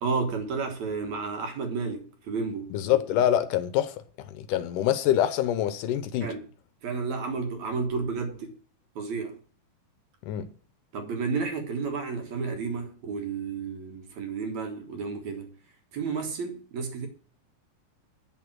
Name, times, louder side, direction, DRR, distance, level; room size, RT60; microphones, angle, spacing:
voice 1, 0.0-2.8 6.2-6.4 6.8-8.5 9.0-9.4 10.9-15.5 15.9-17.1, right 4 dB, 60° right, 2.6 m, -31 dB
voice 2, 2.7-4.0 4.3-6.3 10.2-10.5, left 11 dB, 75° left, 2.1 m, -25 dB
8.7 x 7.1 x 6.1 m
omnidirectional pair, 4.0 m